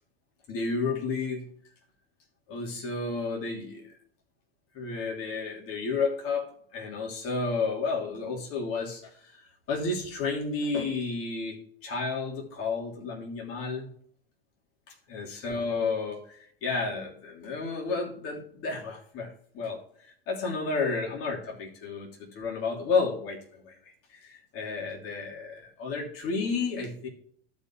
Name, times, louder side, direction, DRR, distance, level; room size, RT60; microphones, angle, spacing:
voice 1, 0.5-1.5 2.5-3.8 4.7-6.5 6.7-13.9 15.1-27.1, left 4 dB, 50° left, -2 dB, 2.9 m, -32 dB
14.5 x 5.4 x 2.8 m, 0.63 s
hypercardioid pair, 95°, 30 cm